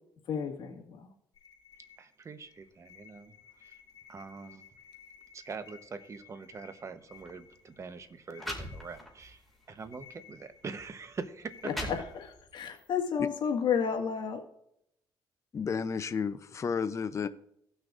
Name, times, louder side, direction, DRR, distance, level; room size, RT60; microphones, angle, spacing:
voice 1, 0.3-1.1 11.6-11.7 12.5-14.4, left 7 dB, 65° left, 2 dB, 1.8 m, -31 dB
sound 1, 1.3-12.9, left 7 dB, 80° left, 3.4 m, -57 dB
voice 2, 2.0-3.3 3.6-3.8 4.1-4.7 5.3-9.4 9.7-11.9, right 4 dB, 35° right, 10 dB, 1.0 m, -43 dB
sound 2, 7.1-7.3 8.0-8.1 8.4-9.3 9.8-10.0 10.8-10.9 11.4-12.5, left 1 dB, ahead, 2.2 m, -40 dB
voice 3, 15.5-17.3, left 6 dB, 35° left, 11 dB, 0.6 m, -32 dB
17.5 x 6.3 x 2.5 m, 0.76 s
cardioid pair, 95°, 9 cm